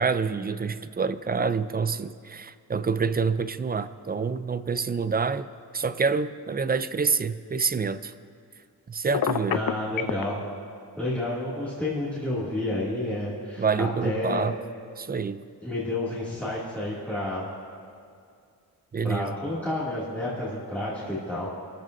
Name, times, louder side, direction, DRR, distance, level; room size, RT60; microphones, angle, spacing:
voice 1, 0.0-8.1 8.9-9.6 13.6-14.6 15.0-15.4 18.9-19.4, right 5 dB, 25° right, 12 dB, 0.4 m, -27 dB
Telephone, 9.1-10.2, left 9 dB, 60° left, 0.6 m, -26 dB
voice 2, 9.5-10.4 11.0-14.5 15.6-17.4 19.0-21.5, left 1 dB, 5° left, -10 dB, 2.4 m, -30 dB
28.5 x 13.5 x 2.6 m, 2.4 s
wide cardioid pair, 160°, 39 cm